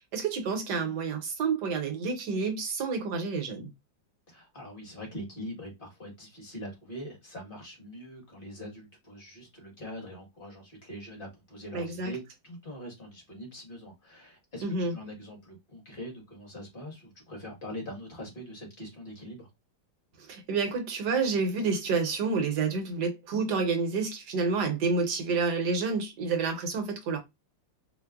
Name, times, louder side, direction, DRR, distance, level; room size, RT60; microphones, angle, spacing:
voice 1, 0.0-3.7 11.7-12.1 14.6-14.9 20.2-27.2, right 4 dB, 65° right, 1.2 m, -29 dB
voice 2, 4.3-19.5, equal, 35° left, 1.1 m, -43 dB
4.5 x 2.0 x 2.3 m
omnidirectional pair, 2.1 m